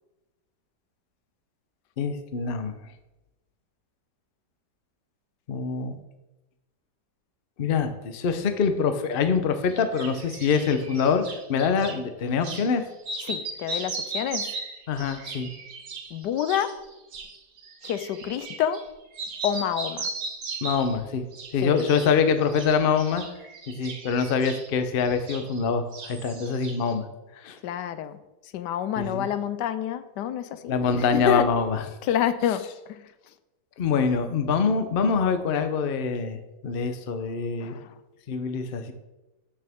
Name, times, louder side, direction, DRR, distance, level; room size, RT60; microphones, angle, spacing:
voice 1, 2.0-2.7 5.5-6.0 7.6-11.2 11.5-12.8 14.9-15.5 20.6-21.2 21.5-23.2 23.7-27.0 27.4-27.6 29.0-29.3 30.7-31.8 33.8-36.4 36.6-37.8 38.3-38.9, left 5 dB, 50° left, 0.7 m, -25 dB
sound 1, 9.7-12.0 12.4-12.7 13.0-18.9 19.1-21.0 21.3-22.1 22.4-25.7 25.9-26.9, right 3 dB, 60° right, 1.5 m, -37 dB
voice 2, 13.2-14.5 16.1-16.8 17.8-18.9 19.4-20.1 21.6-21.9 27.6-28.2 28.5-31.5 32.0-33.0 37.6-37.9, left 10 dB, 85° left, 1.2 m, -28 dB
13.0 x 6.3 x 3.6 m
omnidirectional pair, 1.8 m